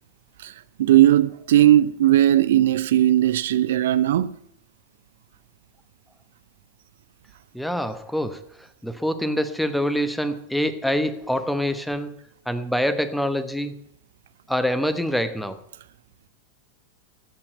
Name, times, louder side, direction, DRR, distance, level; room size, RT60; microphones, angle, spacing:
voice 1, 0.8-4.3, right 12 dB, 60° right, 0.6 m, -17 dB
voice 2, 7.5-8.4 8.8-12.1 12.5-13.7 14.5-15.6, equal, ahead, 1.0 m, -25 dB
14.5 x 5.9 x 8.1 m
figure-of-eight pair, 90°, 0 cm